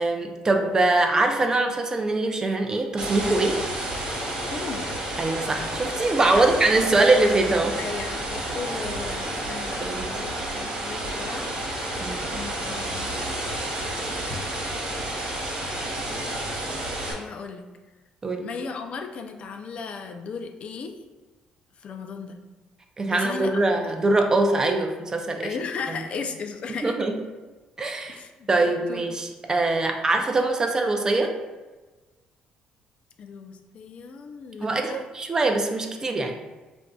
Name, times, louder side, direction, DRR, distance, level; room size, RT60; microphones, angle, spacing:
voice 1, 0.0-3.6 5.2-7.8 9.8-10.1 12.0-12.3 18.2-18.5 23.0-25.5 25.9-26.0 26.8-27.1 27.8-28.2 28.5-31.3 34.6-36.4, right 2 dB, 25° right, 4 dB, 0.4 m, -23 dB
sound 1, 3.0-17.1, right 1 dB, 45° right, 1.2 m, -30 dB
voice 2, 4.5-4.9 6.3-6.5 7.8-10.3 10.5-11.5 12.3-13.1 16.8-17.7 18.4-21.0 21.8-22.4 23.0-24.1 25.4-26.9 28.1-29.1 33.2-35.0, left 5 dB, 50° left, 5 dB, 0.3 m, -36 dB
4.7 x 2.5 x 2.2 m, 1.2 s
cardioid pair, 100°, 3 cm